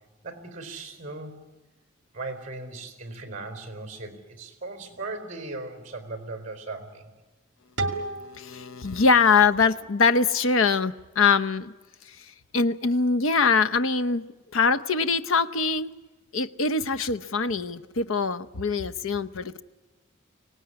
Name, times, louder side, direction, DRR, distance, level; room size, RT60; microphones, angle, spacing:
voice 1, 0.2-1.4 2.1-7.1, right 3 dB, 35° right, 8 dB, 4.0 m, -38 dB
sound 1, 7.8-10.6, right 2 dB, 55° right, 2.1 m, -36 dB
voice 2, 8.3-11.7 12.1-14.3 14.5-15.9 16.3-19.6, left 4 dB, 80° left, 12 dB, 0.8 m, -23 dB
25.0 x 18.0 x 9.7 m, 1.2 s
head